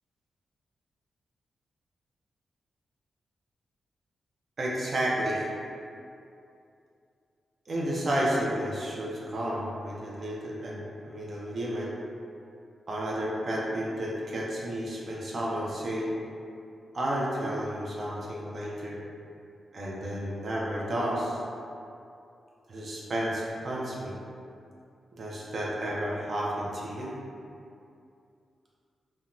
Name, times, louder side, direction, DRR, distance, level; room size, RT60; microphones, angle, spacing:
voice 1, 4.6-5.5 7.7-11.9 12.9-16.1 16.9-19.0 19.7-21.4 22.7-24.1 25.1-27.1, right 1 dB, 40° right, -4 dB, 0.4 m, -31 dB
2.5 x 2.1 x 2.9 m, 2.5 s
wide cardioid pair, 180°, 0 cm